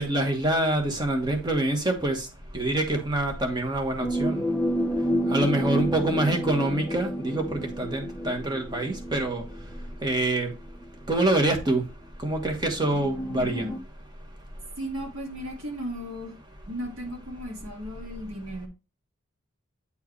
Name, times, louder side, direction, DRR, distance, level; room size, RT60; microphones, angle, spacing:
voice 1, 0.0-2.3 2.5-4.4 5.3-9.4 10.0-10.5 11.1-11.8 12.2-13.7, right 1 dB, 20° right, 1.3 m, -26 dB
sound 1, 4.0-9.9 10.8-10.9 12.7-13.8, equal, 10° left, 0.5 m, -30 dB
voice 2, 13.3-13.7 14.8-16.3 16.7-18.7, equal, 80° right, 2.1 m, -35 dB
8.4 x 4.5 x 3.2 m
head